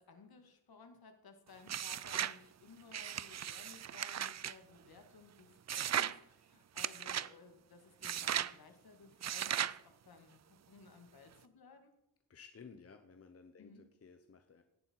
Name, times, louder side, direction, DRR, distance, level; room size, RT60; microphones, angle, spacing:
voice 1, 0.0-11.9 13.6-13.8, left 4 dB, 60° left, 6 dB, 2.3 m, -58 dB
sound 1, 1.7-2.4 2.9-4.6 5.7-6.2 6.8-7.3 8.0-8.5 9.2-9.8, right 10 dB, 40° right, 0.4 m, -37 dB
voice 2, 12.3-14.6, left 5 dB, 35° left, 7 dB, 0.9 m, -56 dB
17.5 x 11.0 x 4.7 m, 0.85 s
wide cardioid pair, 150°, 42 cm